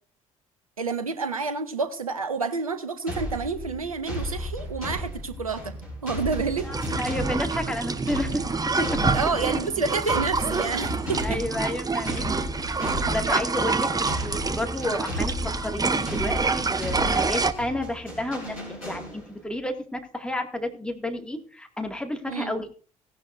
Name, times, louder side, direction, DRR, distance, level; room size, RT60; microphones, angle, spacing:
voice 1, 0.8-5.8 6.0-6.7 9.1-11.4 22.3-22.5, right 4 dB, 85° right, 11 dB, 0.8 m, -29 dB
sound 1, 3.1-19.5, left 1 dB, 90° left, 4.1 m, -34 dB
voice 2, 6.6-8.4 8.8-8.9 11.2-12.4 12.8-15.3 15.6-22.7, left 1 dB, 5° left, 4 dB, 2.1 m, -31 dB
sound 2, 6.7-17.5, right 4 dB, 20° right, 0.9 m, -27 dB
16.5 x 11.0 x 2.6 m, 0.41 s
figure-of-eight pair, 50°, 18 cm